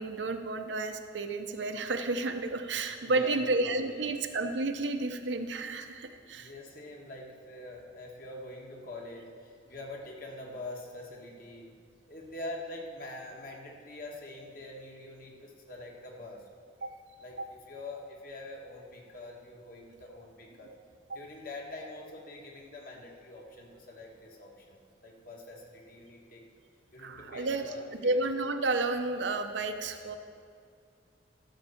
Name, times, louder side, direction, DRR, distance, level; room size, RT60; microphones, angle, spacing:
voice 1, 0.0-6.5 16.8-16.9 17.4-17.5 21.1-21.2 27.0-27.6 28.0-30.2, right 2 dB, 90° right, 6 dB, 0.8 m, -31 dB
voice 2, 3.0-4.1 6.3-11.7 12.1-16.4 17.2-17.4 17.7-20.7 21.1-26.4 26.9-28.2, left 2 dB, 50° left, 0 dB, 1.7 m, -44 dB
12.5 x 5.5 x 7.1 m, 2.3 s
head